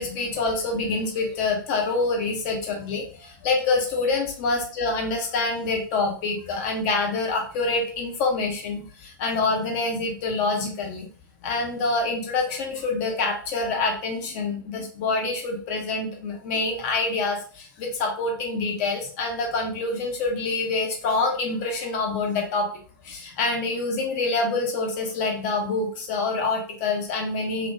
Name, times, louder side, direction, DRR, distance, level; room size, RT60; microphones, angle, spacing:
voice 1, 0.0-11.1 11.4-22.7 23.0-27.7, left 3 dB, 45° left, 2 dB, 0.8 m, -26 dB
2.4 x 2.2 x 3.0 m, 0.42 s
figure-of-eight pair, 95°, 11 cm